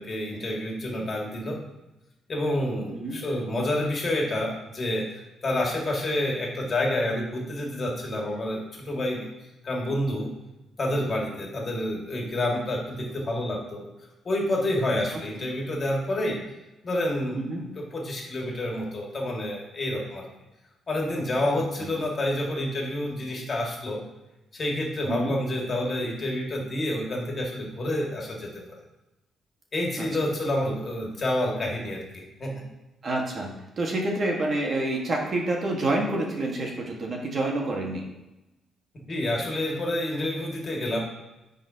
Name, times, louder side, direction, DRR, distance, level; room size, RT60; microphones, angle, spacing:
voice 1, 0.0-1.6 2.3-5.0 5.4-9.3 9.6-10.3 10.8-13.9 14.2-16.4 16.8-20.2 20.9-24.0 24.5-28.5 29.7-32.5 39.1-41.0, left 1 dB, 40° left, -1 dB, 1.9 m, -28 dB
voice 2, 33.0-38.0, right 2 dB, 45° right, 0 dB, 1.4 m, -28 dB
9.8 x 3.9 x 2.8 m, 0.98 s
cardioid pair, 90°, 0 cm